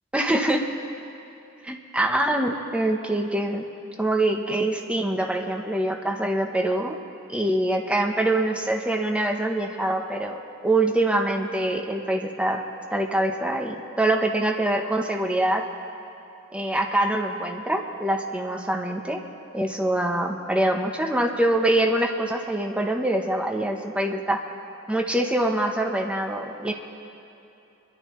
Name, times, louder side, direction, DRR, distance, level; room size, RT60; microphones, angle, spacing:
voice 1, 0.1-0.6 1.6-3.6 4.0-7.0 7.3-10.4 10.6-12.6 12.9-15.6 16.5-19.2 19.5-24.4 24.9-26.7, right 1 dB, 5° right, 2 dB, 0.9 m, -24 dB
27.5 x 11.0 x 3.2 m, 2.8 s
head